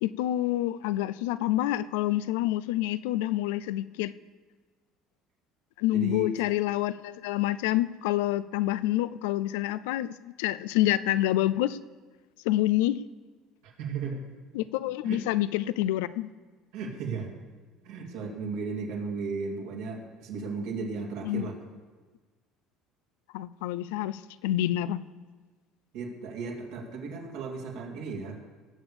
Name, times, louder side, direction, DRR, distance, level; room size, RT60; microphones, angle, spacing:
voice 1, 0.0-4.1 5.8-11.8 12.4-13.0 14.5-16.3 21.2-21.5 23.3-25.0, left 14 dB, 85° left, 16 dB, 0.4 m, -27 dB
voice 2, 5.9-6.3 13.6-14.3 15.0-15.2 16.7-17.3 17.8-21.6 25.9-28.4, right 4 dB, 80° right, 0 dB, 2.7 m, -35 dB
18.5 x 7.2 x 6.9 m, 1.3 s
supercardioid pair, 90°, 0 cm